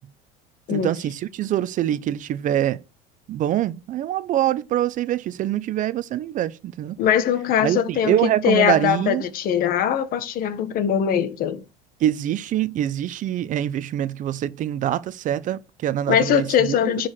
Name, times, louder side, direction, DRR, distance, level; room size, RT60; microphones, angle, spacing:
voice 1, 0.7-2.8 3.3-7.0 7.6-9.2 12.0-16.8, right 12 dB, 40° right, 0.7 m, -24 dB
voice 2, 7.0-11.6 16.1-17.1, left 9 dB, 50° left, 1.5 m, -21 dB
9.9 x 4.8 x 6.4 m
cardioid pair, 140°, 20 cm